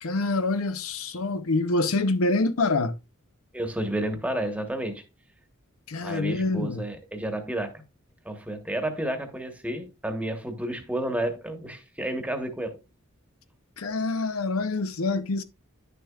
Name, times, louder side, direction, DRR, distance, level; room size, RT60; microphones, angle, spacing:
voice 1, 0.0-2.9 5.9-6.8 13.8-15.4, left 2 dB, 80° left, 0.7 m, -26 dB
voice 2, 3.5-5.0 6.0-7.8 8.2-12.8, right 1 dB, 5° right, 1.1 m, -31 dB
10.0 x 6.8 x 2.3 m
head